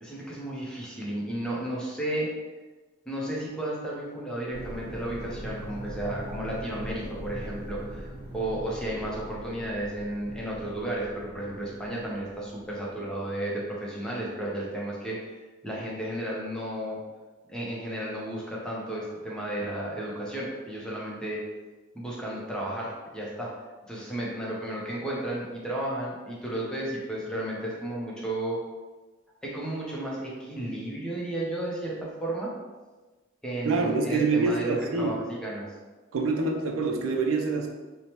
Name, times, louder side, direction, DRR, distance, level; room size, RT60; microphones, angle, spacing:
voice 1, 0.0-2.3 3.1-17.0 17.5-21.4 21.9-23.5 23.9-28.6 29.4-32.5 33.4-35.7, right 1 dB, 5° left, -5 dB, 0.5 m, -33 dB
sound 1, 4.5-13.1, equal, 65° left, 0.7 m, -41 dB
voice 2, 33.6-35.2 36.1-37.7, right 3 dB, 80° right, 3 dB, 0.4 m, -26 dB
2.9 x 2.1 x 2.9 m, 1.2 s
head